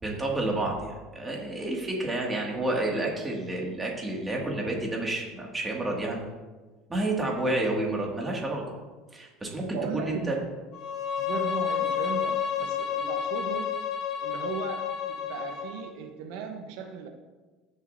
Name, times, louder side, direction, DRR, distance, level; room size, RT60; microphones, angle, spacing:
voice 1, 0.0-6.2 6.9-8.6 9.1-10.4, right 2 dB, 15° right, -2 dB, 2.0 m, -30 dB
voice 2, 9.5-10.4 11.2-13.8 14.2-17.1, right 5 dB, 75° right, 4 dB, 0.9 m, -37 dB
Bowed string instrument, 10.7-15.9, left 8 dB, 50° left, 1.1 m, -30 dB
15.5 x 6.7 x 2.7 m, 1.3 s
supercardioid pair, 130°, 0 cm